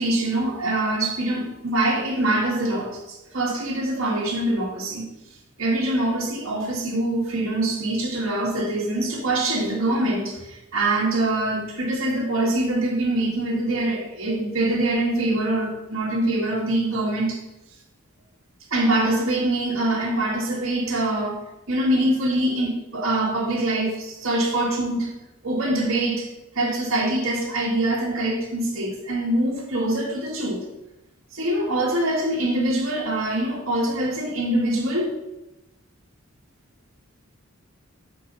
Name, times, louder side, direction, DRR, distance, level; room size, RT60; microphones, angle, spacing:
voice 1, 0.0-5.1 5.6-17.4 18.7-21.4 21.7-25.1 25.4-26.3 26.6-30.6 31.3-35.1, right 1 dB, 75° right, -3 dB, 1.8 m, -24 dB
7.7 x 4.6 x 4.0 m, 0.94 s
head